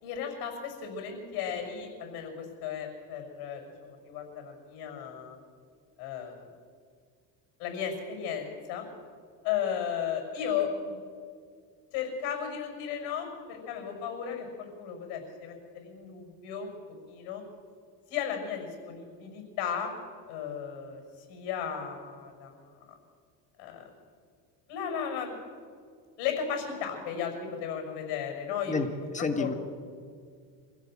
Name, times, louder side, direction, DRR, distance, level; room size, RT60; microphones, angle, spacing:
voice 1, 0.0-5.4 6.0-6.5 7.6-8.9 9.4-11.0 11.9-16.8 17.1-17.4 18.1-19.9 20.3-22.9 23.6-23.8 24.7-25.4 26.2-28.7 29.4-29.5, left 8 dB, 80° left, 3 dB, 6.2 m, -35 dB
voice 2, 29.1-29.5, left 4 dB, 20° left, 6 dB, 2.0 m, -29 dB
26.0 x 16.0 x 7.8 m, 2.1 s
cardioid pair, 135°, 39 cm